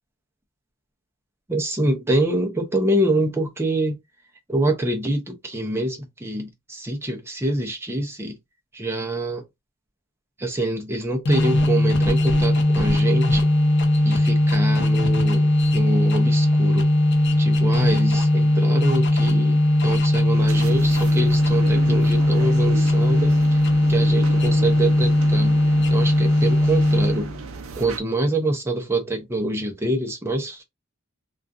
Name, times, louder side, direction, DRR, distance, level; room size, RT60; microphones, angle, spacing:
voice 1, 1.5-4.0 4.5-8.4 8.7-9.5 10.4-13.5 14.0-16.9 17.4-23.6 23.9-25.6 25.9-27.3 27.8-30.6, right 1 dB, 10° right, 0.5 m, -26 dB
sound 1, 11.3-27.4, left 1 dB, 50° left, 0.6 m, -19 dB
sound 2, 20.3-28.0, right 4 dB, 65° right, 0.5 m, -35 dB
2.4 x 2.3 x 2.4 m
head